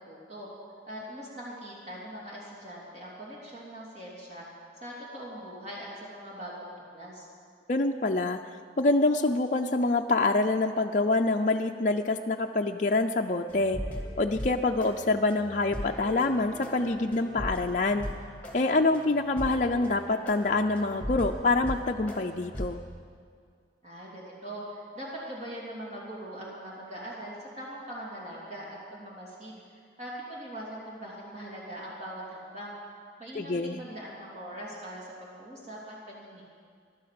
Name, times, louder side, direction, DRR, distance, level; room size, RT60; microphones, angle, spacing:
voice 1, 0.1-0.5 0.9-7.3 23.8-29.6 30.0-32.8 33.2-36.4, right 1 dB, 35° right, -4 dB, 3.1 m, -41 dB
voice 2, 7.7-13.8 14.2-18.0 18.5-22.8 33.3-33.8, left 2 dB, 40° left, 2 dB, 0.5 m, -26 dB
sound 1, 13.5-23.0, equal, 10° left, 2.4 m, -39 dB
16.0 x 11.5 x 7.7 m, 2.2 s
head